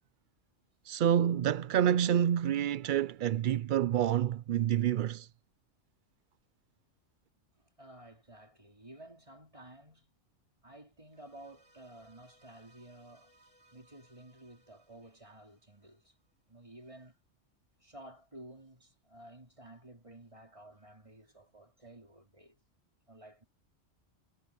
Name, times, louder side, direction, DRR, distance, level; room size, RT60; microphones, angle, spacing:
voice 1, 0.9-5.3, right 10 dB, 60° right, 0.5 m, -28 dB
voice 2, 7.6-10.2 10.6-13.3 13.7-16.2 16.5-17.2 17.8-22.6 23.1-23.4, right 1 dB, 25° right, 3.8 m, -53 dB
sound 1, 11.1-16.3, right 1 dB, 90° right, 7.1 m, -67 dB
omnidirectional pair, 1.3 m